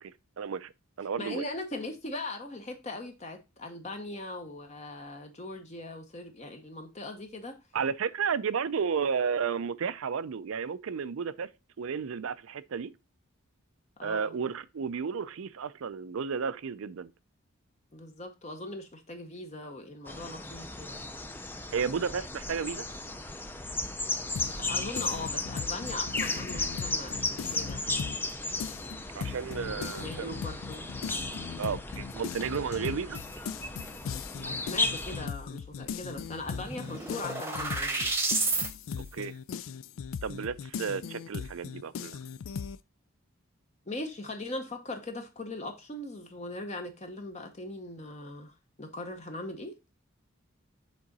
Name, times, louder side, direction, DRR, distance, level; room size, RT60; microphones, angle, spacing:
voice 1, 0.0-0.7 1.0-1.4 7.7-11.5 11.8-12.9 14.0-17.1 21.7-22.9 29.2-30.4 31.6-33.2 39.1-39.3 40.2-42.2, right 6 dB, 80° right, 0.4 m, -32 dB
voice 2, 1.2-7.6 14.0-14.4 17.9-21.0 24.5-27.8 29.7-30.9 31.4-31.7 34.4-38.1 43.9-49.7, left 2 dB, 30° left, 0.8 m, -40 dB
sound 1, 20.1-35.3, left 2 dB, 10° left, 0.4 m, -35 dB
sound 2, 24.4-28.3 28.6-42.8, left 6 dB, 75° left, 0.3 m, -39 dB
sound 3, 35.8-35.9 36.2-38.7, right 3 dB, 10° right, 0.9 m, -31 dB
7.5 x 3.8 x 4.0 m
head